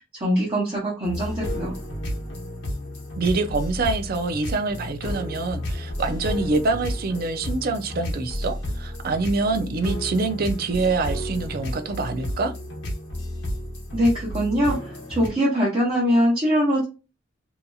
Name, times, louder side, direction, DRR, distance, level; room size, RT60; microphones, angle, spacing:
voice 1, 0.0-1.7 13.9-16.8, equal, 30° right, 1.0 m, -22 dB
sound 1, 1.0-15.3, left 1 dB, 75° left, 0.9 m, -32 dB
voice 2, 3.2-12.5, right 3 dB, 50° right, 0.4 m, -25 dB
2.8 x 2.6 x 2.3 m
head